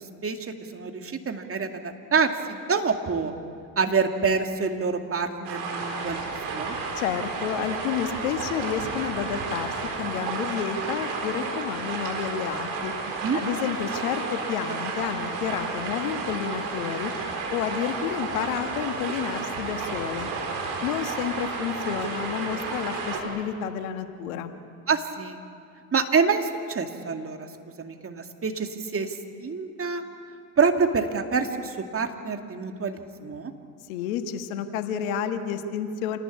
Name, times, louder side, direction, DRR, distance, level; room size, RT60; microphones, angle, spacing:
voice 1, 0.0-3.3 3.8-6.7 13.2-13.4 24.9-25.4 25.9-27.5 27.8-30.0 30.6-33.5, right 5 dB, 30° right, 5 dB, 2.4 m, -27 dB
sound 1, 5.4-23.2, right 4 dB, 70° right, 4.4 m, -32 dB
voice 2, 7.0-12.9 13.3-17.1 17.5-20.3 20.8-24.5 33.9-36.2, left 8 dB, 75° left, 8 dB, 1.6 m, -30 dB
27.0 x 18.5 x 8.6 m, 2.3 s
hypercardioid pair, 60°, 42 cm